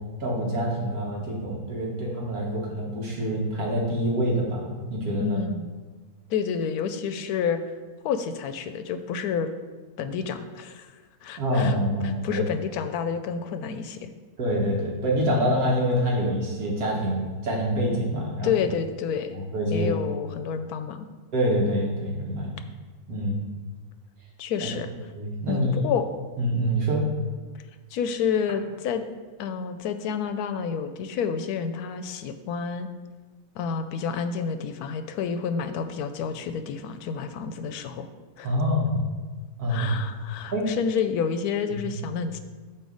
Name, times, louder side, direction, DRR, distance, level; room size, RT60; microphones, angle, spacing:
voice 1, 0.2-5.4 11.4-12.4 14.4-18.5 19.3-19.9 21.3-22.5 23.1-23.4 24.6-24.7 25.1-25.7 26.4-27.0 38.4-39.0 39.6-40.0 40.5-40.7 41.7-41.8, equal, 70° right, -2 dB, 1.7 m, -26 dB
voice 2, 5.2-5.7 6.3-7.6 8.0-9.5 10.0-10.9 11.2-11.8 12.0-14.1 18.4-19.4 19.7-21.1 24.4-24.9 25.5-26.1 27.9-29.0 29.4-32.9 33.6-38.1 38.4-38.5 39.7-42.4, left 6 dB, 80° left, 9 dB, 1.1 m, -29 dB
8.8 x 3.0 x 6.3 m, 1.4 s
omnidirectional pair, 1.6 m